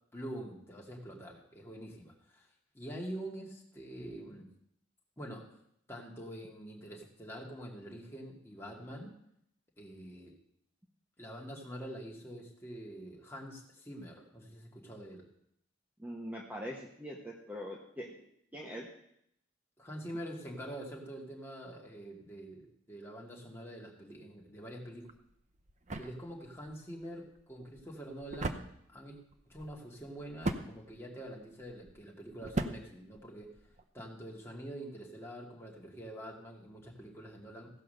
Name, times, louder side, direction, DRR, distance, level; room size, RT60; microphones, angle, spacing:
voice 1, 0.1-2.5 2.7-4.5 5.2-5.5 5.9-9.1 9.8-10.4 11.2-15.3 19.8-25.1 26.0-29.2 29.4-33.5 33.9-37.7, right 1 dB, 15° left, -2 dB, 2.1 m, -45 dB
voice 2, 16.0-18.2 18.5-18.9, equal, 10° right, -2 dB, 1.2 m, -42 dB
sound 1, 25.0-33.9, right 2 dB, 35° right, 0.7 m, -41 dB
16.0 x 5.6 x 6.6 m, 0.74 s
head